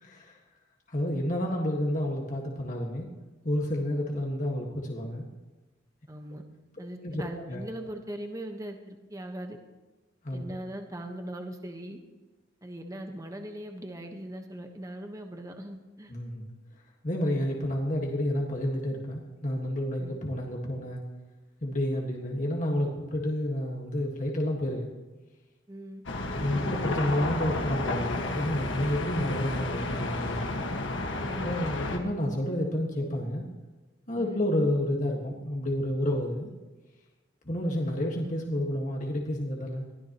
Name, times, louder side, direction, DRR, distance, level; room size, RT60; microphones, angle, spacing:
voice 1, 0.0-0.4 0.9-3.1 3.4-5.3 7.0-7.2 7.5-7.6 10.2-10.5 16.1-16.5 17.0-21.0 21.6-24.9 26.4-30.5 31.4-33.5 34.1-36.5 37.5-39.8, left 1 dB, 40° left, 0 dB, 1.7 m, -30 dB
voice 2, 6.1-6.4 6.8-9.6 10.3-12.0 12.6-16.1 20.0-20.2 25.7-26.0 31.2-31.7 34.1-34.4, right 1 dB, 20° right, 4 dB, 1.2 m, -40 dB
sound 1, 26.1-32.0, left 2 dB, 80° left, 1.6 m, -31 dB
22.5 x 15.5 x 3.0 m, 1.2 s
head